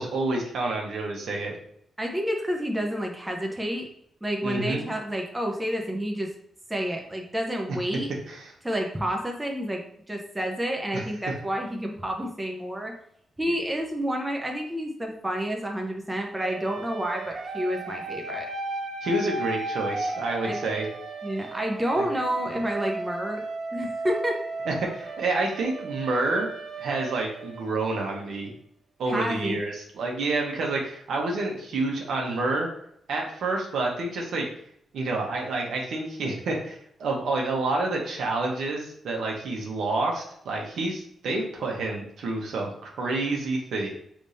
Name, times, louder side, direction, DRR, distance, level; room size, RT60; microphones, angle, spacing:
voice 1, 0.0-1.6 4.4-4.8 8.3-8.4 19.0-20.9 22.0-22.1 24.7-26.5 26.8-28.5 29.0-32.7 33.1-34.4 34.9-43.9, right 2 dB, 80° right, 0 dB, 1.1 m, -28 dB
voice 2, 2.0-3.9 4.2-6.3 6.7-8.1 8.6-9.8 10.1-12.9 13.4-18.5 20.4-20.6 21.2-23.4 23.7-24.4 29.1-29.6, equal, 10° right, 1 dB, 0.8 m, -29 dB
sound 1, 16.3-28.1, right 3 dB, 55° right, 0.8 m, -35 dB
4.9 x 3.5 x 2.8 m, 0.71 s
cardioid pair, 95°, 0 cm